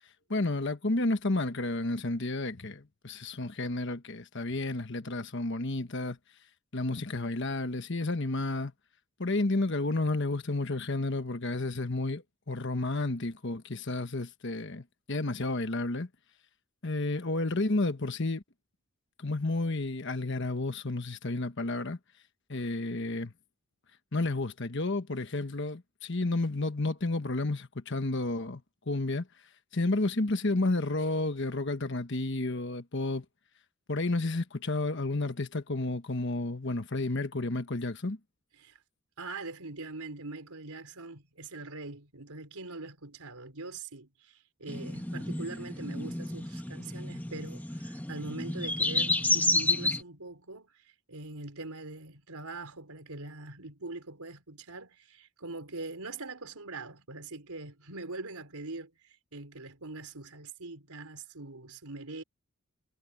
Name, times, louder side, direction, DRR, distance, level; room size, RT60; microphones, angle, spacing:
voice 1, 0.3-6.2 6.7-8.7 9.2-16.1 16.8-18.4 19.2-22.0 22.5-23.3 24.1-28.6 28.9-29.3 29.7-33.2 33.9-38.2, left 2 dB, 55° left, 1.2 m, -31 dB
voice 2, 39.2-62.2, right 3 dB, 90° right, 4.4 m, -43 dB
sound 1, 44.7-50.0, left 2 dB, 10° left, 1.3 m, -30 dB
head